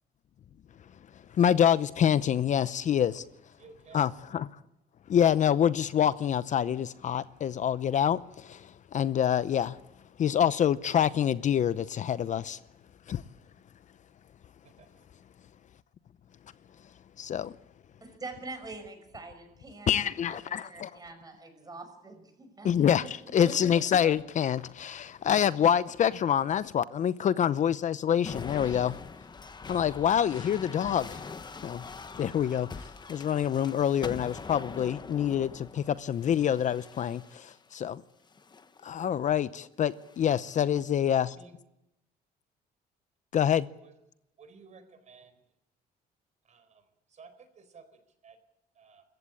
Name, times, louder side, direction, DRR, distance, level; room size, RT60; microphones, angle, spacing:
voice 1, 1.1-3.2 3.9-4.5 5.1-9.8 10.2-12.6 13.1-13.2 17.2-17.6 19.9-20.9 22.6-29.0 29.7-31.3 31.6-31.8 32.2-32.8 33.1-38.0 38.8-41.4 43.3-43.7, left 9 dB, 45° left, 0.7 m, -26 dB
voice 2, 3.6-4.0 14.8-14.9 41.4-41.5 43.8-43.9 44.4-45.3 46.5-46.8 47.1-47.3 47.6-47.8 48.2-48.4 48.8-49.0, right 5 dB, 45° right, 4.4 m, -53 dB
voice 3, 18.0-22.7 23.4-23.5 24.0-24.1, right 3 dB, 20° right, 6.0 m, -44 dB
sound 1, 28.2-37.6 38.3-38.8 39.9-40.6, left 4 dB, 25° left, 1.2 m, -43 dB
25.5 x 15.0 x 8.7 m
cardioid pair, 110°, 17 cm